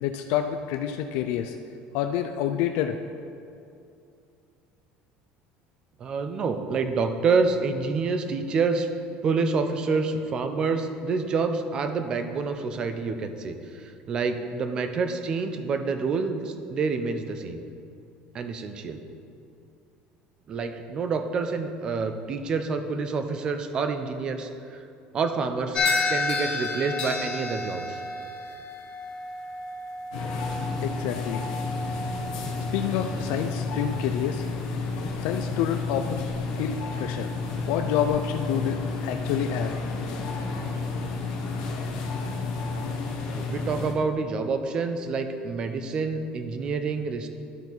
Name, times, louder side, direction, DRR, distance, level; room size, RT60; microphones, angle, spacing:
voice 1, 0.0-1.6 1.9-3.0 30.8-31.5 31.9-32.1 32.7-34.5 35.2-37.3 37.7-39.7, left 10 dB, 60° left, 6 dB, 0.3 m, -28 dB
voice 2, 6.0-8.9 9.2-17.6 18.3-19.0 20.5-24.8 25.1-25.8 26.1-28.0 43.3-47.3, right 4 dB, 25° right, 8 dB, 0.4 m, -27 dB
sound 1, 25.7-34.1, left 3 dB, 30° left, 0.9 m, -32 dB
sound 2, 30.1-43.9, left 3 dB, 85° left, 1.1 m, -31 dB
11.5 x 4.4 x 4.0 m, 2.6 s
cardioid pair, 180°, 3 cm